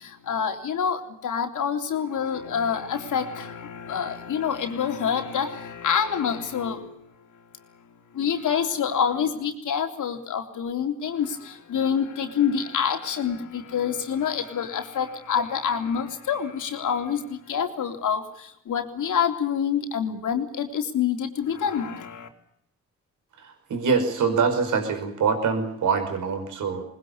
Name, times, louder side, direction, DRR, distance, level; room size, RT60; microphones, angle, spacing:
voice 1, 0.0-7.0 8.1-22.3, left 7 dB, 75° left, 4 dB, 3.6 m, -27 dB
voice 2, 23.4-26.8, right 5 dB, 75° right, 5 dB, 5.3 m, -24 dB
21.5 x 20.0 x 8.6 m, 0.76 s
cardioid pair, 60°, 31 cm